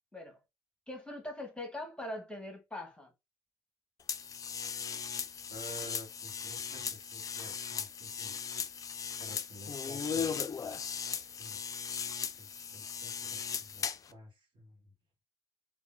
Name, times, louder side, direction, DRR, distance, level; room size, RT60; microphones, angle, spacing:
voice 1, 0.9-3.1, left 1 dB, 10° left, 1.0 m, -42 dB
sound 1, 4.1-14.1, left 6 dB, 30° left, 0.3 m, -38 dB
voice 2, 5.5-8.4 9.2-10.3 11.4-11.6 12.2-12.5 12.7-13.8 14.1-14.7, right 1 dB, 45° right, 1.5 m, -51 dB
3.4 x 2.1 x 2.4 m
supercardioid pair, 65°, 11 cm